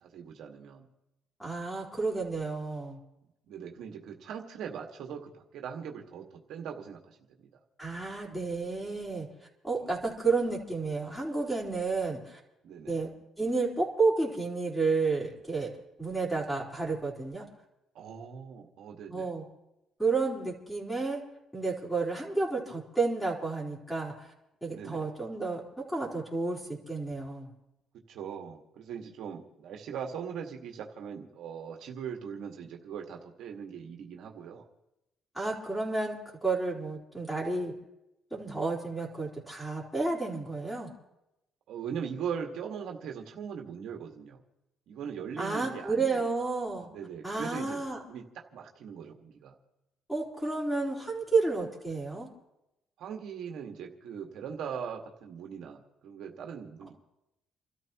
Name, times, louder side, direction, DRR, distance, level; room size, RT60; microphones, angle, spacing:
voice 1, 0.0-0.9 3.5-7.5 9.8-9.9 12.6-13.0 17.9-19.3 24.7-25.1 28.1-34.7 41.7-44.4 44.9-46.2 46.9-47.8 48.1-48.3 48.5-49.5 53.0-56.9, right 7 dB, 75° right, 2 dB, 1.9 m, -40 dB
voice 2, 1.4-3.0 7.8-9.3 9.6-12.4 12.9-13.1 13.4-15.7 16.0-17.5 19.1-19.4 20.0-21.2 21.5-24.3 24.6-27.5 35.3-37.7 38.3-40.9 45.4-46.9 47.2-48.0 50.1-52.3, right 3 dB, 5° left, -2 dB, 4.5 m, -31 dB
29.5 x 13.5 x 3.1 m, 0.91 s
cardioid pair, 105°, 0 cm